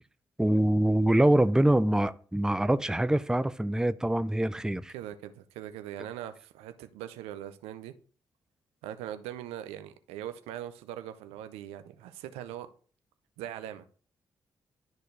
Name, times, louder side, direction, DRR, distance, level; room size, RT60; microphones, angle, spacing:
voice 1, 0.4-4.9, right 1 dB, 5° right, 0.5 m, -24 dB
voice 2, 4.9-7.9 8.8-12.7 13.4-13.9, right 11 dB, 80° right, 0.6 m, -41 dB
12.0 x 4.2 x 3.2 m
hypercardioid pair, 40°, 10 cm